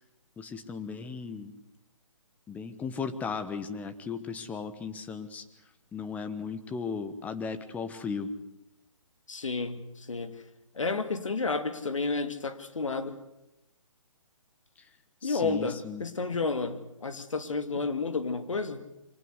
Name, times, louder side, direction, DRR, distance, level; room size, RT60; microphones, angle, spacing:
voice 1, 0.4-1.6 2.5-5.4 5.9-8.3 14.8-14.9 15.2-16.0, left 5 dB, 10° left, 10 dB, 1.2 m, -36 dB
voice 2, 9.3-10.4 10.7-13.2 15.2-18.8, left 4 dB, 70° left, 10 dB, 2.4 m, -31 dB
24.5 x 18.5 x 8.1 m, 0.90 s
figure-of-eight pair, 140°, 17 cm